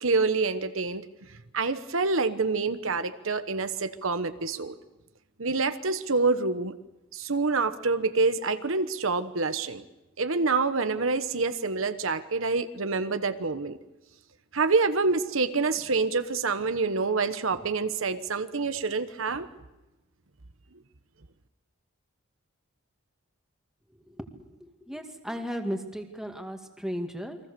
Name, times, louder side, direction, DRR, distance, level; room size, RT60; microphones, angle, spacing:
voice 1, 0.0-1.0 1.5-4.7 5.4-6.7 7.1-9.8 10.2-13.8 14.5-19.5, right 4 dB, 70° right, 10 dB, 1.2 m, -27 dB
voice 2, 24.8-27.4, equal, ahead, 4 dB, 2.2 m, -35 dB
29.0 x 23.0 x 6.9 m, 1.0 s
head